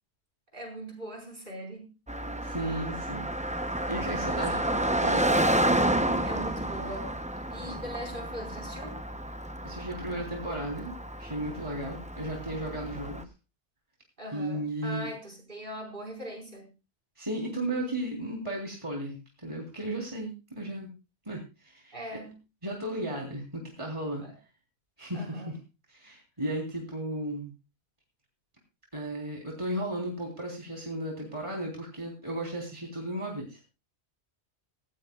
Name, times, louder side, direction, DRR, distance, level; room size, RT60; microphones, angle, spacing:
voice 1, 0.5-1.9 4.1-4.5 6.2-7.2 7.5-9.0 14.2-16.7 21.9-22.3 24.2-24.4 25.1-25.6, equal, 50° right, 1 dB, 5.0 m, -41 dB
Car passing by, 2.1-13.2, right 1 dB, 10° right, 0.6 m, -30 dB
voice 2, 2.4-3.2 3.9-4.7 5.0-5.3 9.6-10.9 11.2-13.2 14.3-15.1 17.2-20.9 21.3-21.9 22.6-24.3 25.0-25.6 25.9-27.5 28.9-33.6, right 1 dB, 25° right, 0 dB, 3.7 m, -35 dB
18.0 x 15.5 x 2.3 m, 0.29 s
omnidirectional pair, 1.1 m